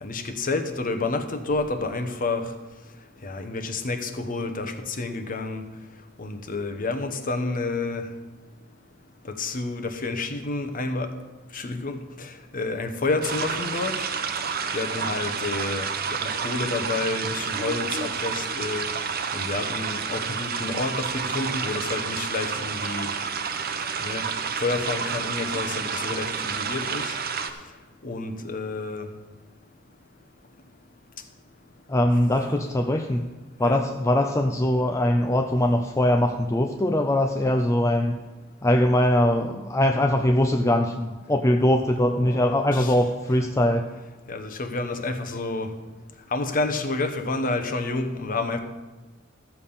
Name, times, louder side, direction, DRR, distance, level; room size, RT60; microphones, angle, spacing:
voice 1, 0.0-2.5 3.2-5.6 6.2-8.1 9.4-11.1 11.5-13.9 14.7-15.9 16.2-18.9 19.3-23.1 24.0-24.3 24.6-27.1 28.0-29.1 33.6-33.8 42.1-42.9 44.3-45.7 46.3-48.6, left 3 dB, 45° left, 7 dB, 1.0 m, -29 dB
sound 1, 13.2-27.5, right 6 dB, 50° right, 0.8 m, -30 dB
voice 2, 31.9-33.3 33.6-38.2 38.6-43.9, left 1 dB, 15° left, 5 dB, 0.5 m, -22 dB
14.0 x 6.9 x 5.5 m, 1.2 s
head